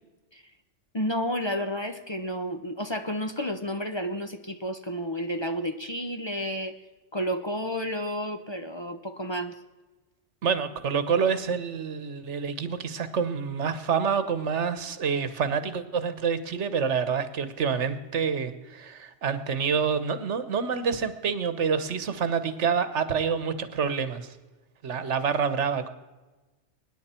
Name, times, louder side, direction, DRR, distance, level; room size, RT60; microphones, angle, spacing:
voice 1, 0.9-6.7 7.1-9.5, equal, 25° left, 7 dB, 0.9 m, -31 dB
voice 2, 10.4-24.4 24.8-25.9, right 6 dB, 80° right, 12 dB, 1.4 m, -27 dB
24.0 x 10.5 x 4.4 m, 1.2 s
omnidirectional pair, 1.2 m